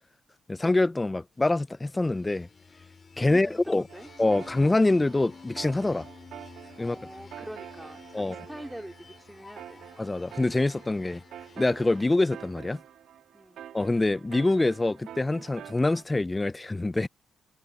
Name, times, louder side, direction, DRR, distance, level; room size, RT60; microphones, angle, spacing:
voice 1, 0.5-2.5 3.2-3.8 4.2-6.1 6.8-7.0 8.1-8.4 10.0-11.2 11.6-12.8 13.7-17.1, left 2 dB, 15° left, 0.5 m, -25 dB
sound 1, 1.8-12.7, left 5 dB, 35° left, 3.0 m, -51 dB
voice 2, 3.3-4.1 4.4-4.6 6.8-9.9 13.3-13.6, right 1 dB, 5° right, 4.1 m, -44 dB
sound 2, 3.9-16.0, right 10 dB, 75° right, 3.2 m, -47 dB
cardioid pair, 90°, 0 cm